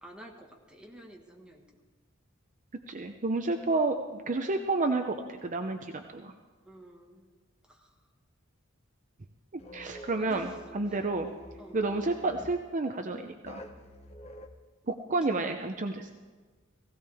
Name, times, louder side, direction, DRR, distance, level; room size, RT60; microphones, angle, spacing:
voice 1, 0.0-1.6 6.7-7.3 7.7-7.9 10.2-10.6 11.6-11.8, right 1 dB, 5° right, 0 dB, 1.6 m, -50 dB
voice 2, 2.9-6.3 9.5-11.3 11.7-13.6 14.9-16.2, right 3 dB, 40° right, 5 dB, 0.7 m, -30 dB
sound 1, 9.6-12.6 13.4-14.5, left 1 dB, 30° left, 1.0 m, -47 dB
17.0 x 16.5 x 3.5 m, 1.4 s
head